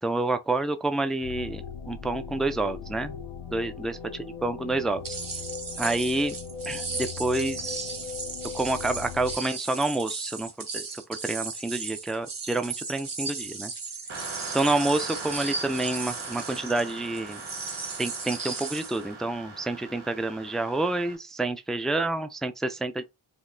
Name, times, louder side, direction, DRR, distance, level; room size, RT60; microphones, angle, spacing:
voice 1, 0.0-3.2 3.5-5.2 5.8-6.4 6.7-8.0 8.5-13.7 14.5-17.4 18.0-23.0, right 2 dB, ahead, 0.4 m, -28 dB
sound 1, 1.2-9.4, left 7 dB, 85° left, 0.7 m, -39 dB
sound 2, 5.0-19.0, right 4 dB, 45° right, 1.0 m, -36 dB
sound 3, 14.1-21.2, right 3 dB, 80° right, 1.2 m, -41 dB
5.2 x 2.7 x 2.6 m
wide cardioid pair, 95°, 48 cm